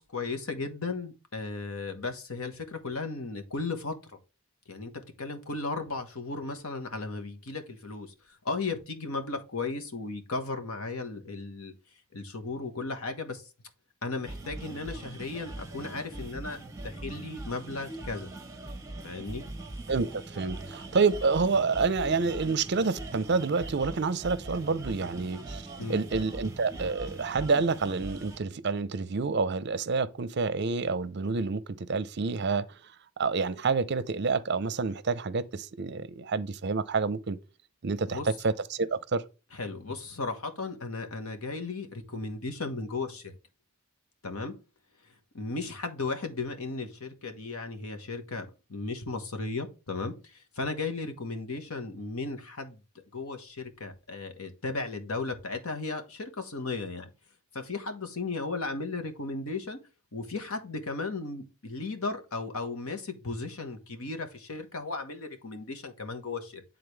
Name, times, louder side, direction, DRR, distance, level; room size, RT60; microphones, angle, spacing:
voice 1, 0.0-4.1 4.7-11.7 12.1-13.5 14.0-16.6 16.8-18.3 19.0-19.4 25.8-26.0 38.1-38.3 39.5-43.4 44.2-44.5 45.3-52.8 53.1-57.1 57.5-59.8 60.1-66.6, left 3 dB, 80° left, 1.3 m, -35 dB
sound 1, 14.2-28.4, right 2 dB, 15° right, 0.9 m, -41 dB
voice 2, 19.9-25.6 25.9-32.6 33.2-37.4 37.8-39.2, right 4 dB, 50° right, 0.5 m, -28 dB
9.8 x 3.9 x 3.3 m
head